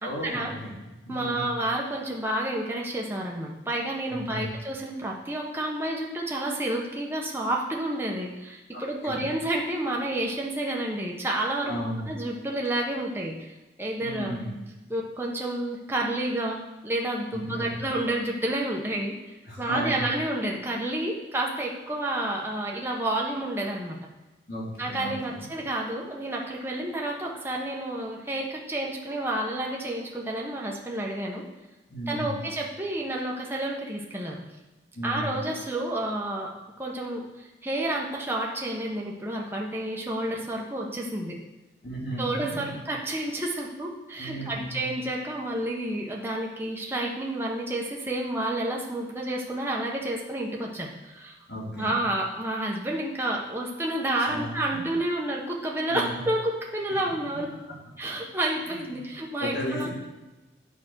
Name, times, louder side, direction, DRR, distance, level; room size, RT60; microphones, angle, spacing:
voice 1, 0.0-0.7 1.0-1.5 4.1-4.5 8.7-9.2 11.6-12.0 14.0-14.5 17.3-17.7 19.5-20.0 24.5-25.4 31.9-32.4 34.9-35.4 41.8-42.8 44.2-44.9 51.5-52.0 54.3-54.5 54.7-54.8 55.9-56.2 58.6-59.0 59.4-59.9, equal, 60° left, -5 dB, 3.2 m, -34 dB
voice 2, 1.1-11.7 12.1-13.5 13.8-14.4 14.9-19.2 19.6-24.0 24.8-31.4 32.1-34.4 35.0-36.5 36.8-41.3 42.2-51.3 51.8-57.5 58.0-59.9, right 1 dB, 15° right, -2 dB, 1.2 m, -30 dB
9.0 x 5.2 x 6.3 m, 1.1 s
head